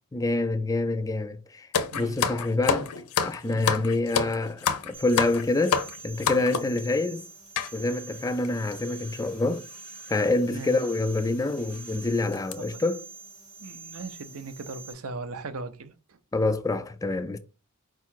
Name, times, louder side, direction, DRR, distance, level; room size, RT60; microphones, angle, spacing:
voice 1, 0.1-1.7 1.9-2.9 3.2-7.3 7.7-9.7 10.1-13.0 16.3-17.4, left 2 dB, 15° left, 0.3 m, -26 dB
sound 1, 1.7-6.8 7.6-7.7 8.4-8.5 8.7-8.9 9.9-10.1 10.5-10.7 11.2-11.3 11.7-11.9 12.3-12.5, left 6 dB, 85° left, 0.5 m, -28 dB
voice 2, 1.9-2.2 3.5-3.7 6.4-6.6 10.5-10.8 12.6-12.9 13.6-16.2, right 3 dB, 75° right, 0.6 m, -39 dB
sound 2, 4.9-14.9, right 4 dB, 20° right, 0.8 m, -46 dB
4.6 x 2.4 x 4.4 m
head